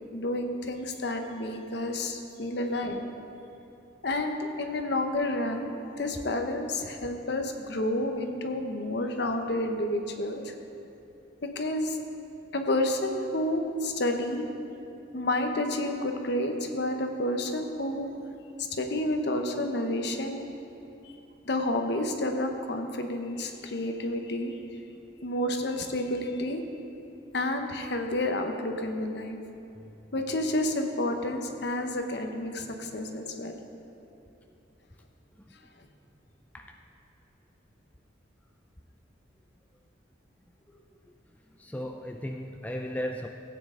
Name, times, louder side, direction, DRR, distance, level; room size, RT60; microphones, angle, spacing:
voice 1, 0.1-3.1 4.0-10.5 11.5-12.0 12.5-14.5 15.1-18.1 18.7-20.5 21.4-24.6 25.2-26.6 27.3-29.4 30.1-33.6, left 1 dB, 60° left, 4 dB, 0.9 m, -30 dB
voice 2, 29.7-30.1 34.5-34.6 35.5-35.6 36.5-36.8 40.7-41.0 41.6-43.3, equal, 10° left, 2 dB, 0.4 m, -37 dB
16.0 x 8.8 x 3.8 m, 2.9 s
head